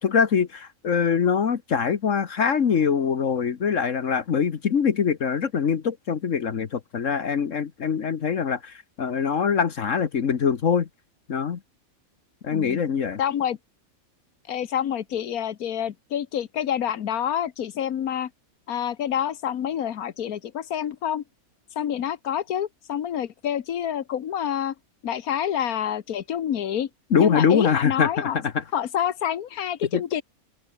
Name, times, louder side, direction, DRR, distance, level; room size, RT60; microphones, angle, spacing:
voice 1, 0.0-10.9 11.3-11.6 12.4-13.2 27.1-28.6 29.9-30.0, left 6 dB, 60° left, 1.6 m, -23 dB
voice 2, 12.5-12.8 13.2-13.6 14.5-18.3 18.7-21.2 21.8-24.7 25.0-26.9 27.2-28.4 28.7-30.2, left 9 dB, 85° left, 1.5 m, -27 dB
open air
omnidirectional pair, 1.5 m